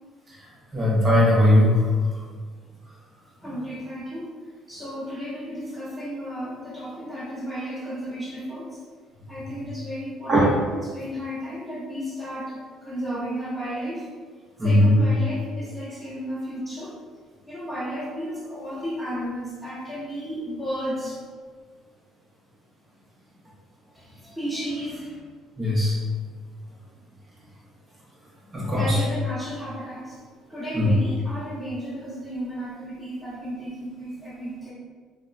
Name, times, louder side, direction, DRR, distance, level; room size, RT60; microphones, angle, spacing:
voice 1, 0.7-1.8 10.3-10.5 14.6-15.0 25.6-25.9 28.5-29.0 30.7-30.9, left 1 dB, 30° right, -6 dB, 1.0 m, -18 dB
voice 2, 3.4-4.3 4.7-8.8 9.3-14.1 14.6-16.9 17.5-21.2 23.9-25.2 28.7-30.2 30.5-34.7, equal, 5° right, -8 dB, 1.1 m, -33 dB
2.8 x 2.2 x 2.5 m, 1.5 s
cardioid pair, 95°, 0 cm